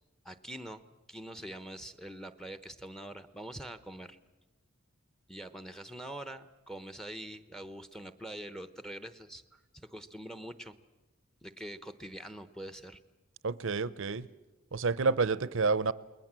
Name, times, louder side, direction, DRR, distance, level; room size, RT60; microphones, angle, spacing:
voice 1, 0.2-4.2 5.3-10.7 11.4-13.0, right 1 dB, ahead, 11 dB, 0.9 m, -44 dB
voice 2, 13.4-14.3 14.7-15.9, right 4 dB, 65° right, 17 dB, 0.7 m, -29 dB
29.5 x 20.5 x 7.5 m, 1.1 s
head